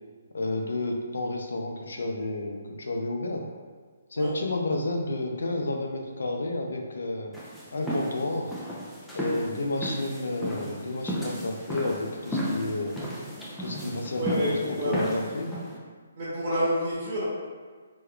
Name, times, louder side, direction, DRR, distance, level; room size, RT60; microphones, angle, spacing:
voice 1, 0.3-3.5 4.1-7.3 7.7-8.5 9.1-13.0 13.6-15.5, left 2 dB, 75° left, 2 dB, 0.5 m, -31 dB
sound 1, 7.3-15.8, equal, 5° left, 0.5 m, -34 dB
voice 2, 14.2-15.0 16.2-17.2, equal, 45° right, -9 dB, 1.2 m, -28 dB
3.5 x 3.0 x 2.3 m, 1.6 s
hypercardioid pair, 145°, 0 cm